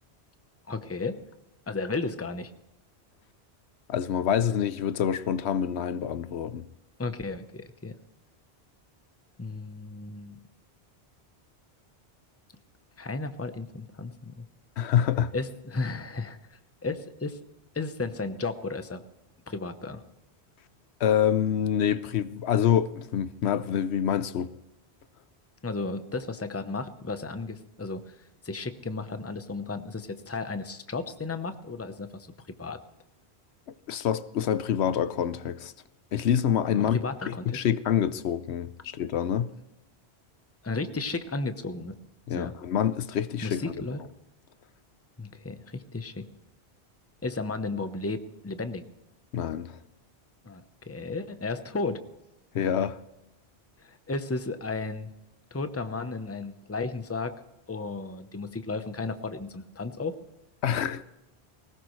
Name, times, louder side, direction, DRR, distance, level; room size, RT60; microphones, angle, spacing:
voice 1, 0.7-1.2 1.7-2.5 7.0-7.9 9.4-10.4 13.0-14.4 15.3-16.4 16.8-17.4 17.7-19.0 19.5-20.0 25.6-28.2 28.4-32.3 32.6-32.8 36.7-37.6 40.6-41.9 42.4-42.5 43.4-44.0 45.2-46.3 47.2-48.8 50.5-52.0 53.8-55.1 55.5-57.3 57.7-60.1, left 3 dB, 15° left, 0.8 m, -34 dB
voice 2, 3.9-6.7 14.8-15.3 21.0-24.5 33.9-35.7 36.1-37.0 37.3-39.5 42.3-43.6 49.3-49.8 52.5-53.0 60.6-61.0, left 9 dB, 80° left, 0.9 m, -26 dB
20.0 x 18.0 x 3.2 m
omnidirectional pair, 1.1 m